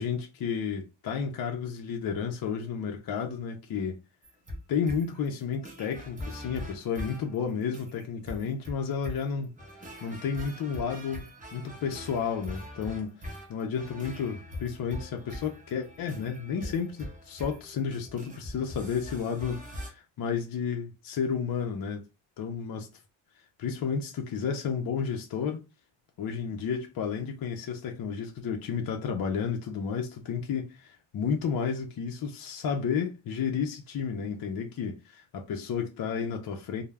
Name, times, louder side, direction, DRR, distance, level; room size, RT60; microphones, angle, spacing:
voice 1, 0.0-4.0 4.7-9.6 10.0-22.1 22.4-22.9 23.6-25.6 26.2-36.8, left 6 dB, 50° left, 0.5 m, -32 dB
sound 1, 4.2-19.9, left 1 dB, 15° right, 0.6 m, -42 dB
2.2 x 2.0 x 3.2 m
wide cardioid pair, 130°, 47 cm